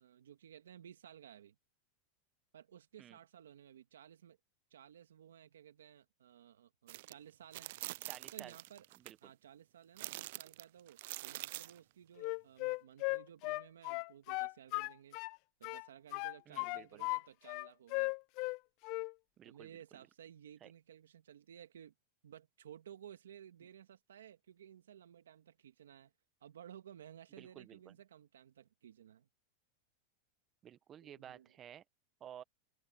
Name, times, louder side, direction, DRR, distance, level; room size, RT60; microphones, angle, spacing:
voice 1, 0.0-1.6 2.5-4.4 4.7-7.7 8.3-8.9 9.2-15.2 15.6-18.2 19.5-21.9 22.2-26.1 26.4-29.3 31.0-31.5, right 10 dB, 90° right, 2.0 m, -56 dB
sound 1, 6.9-7.1 7.5-9.1 10.0-11.8, right 18 dB, 65° right, 0.4 m, -45 dB
voice 2, 8.1-8.6 9.0-9.2 16.5-17.1 19.4-20.0 20.6-20.7 27.4-27.9 30.6-31.8 32.2-32.4, right 10 dB, 30° right, 1.2 m, -54 dB
Wind instrument woodwind instrument, 12.2-15.4 15.6-17.2 17.5-18.6 18.8-19.1, left 27 dB, 55° left, 0.6 m, -37 dB
open air
hypercardioid pair, 115°, 0 cm